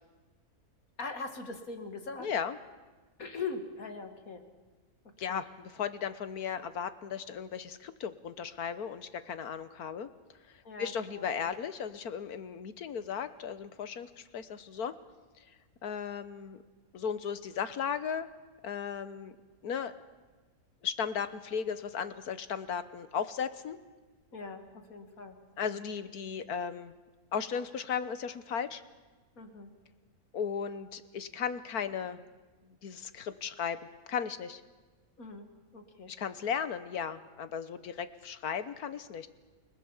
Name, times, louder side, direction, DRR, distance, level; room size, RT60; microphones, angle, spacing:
voice 1, 1.0-2.3 3.2-4.4 5.3-5.4 10.6-11.3 24.3-25.4 25.7-25.8 29.4-29.7 35.2-35.5 35.7-36.1, left 4 dB, 70° left, 6 dB, 2.6 m, -41 dB
voice 2, 2.2-2.6 5.2-10.1 10.8-14.9 15.8-16.6 16.9-18.3 18.6-19.3 19.6-19.9 20.8-23.8 25.6-26.9 27.3-28.8 30.3-32.2 32.8-33.8 34.1-34.6 36.1-39.3, left 7 dB, 90° left, 12 dB, 1.6 m, -36 dB
29.5 x 19.0 x 7.3 m, 1.3 s
omnidirectional pair, 1.6 m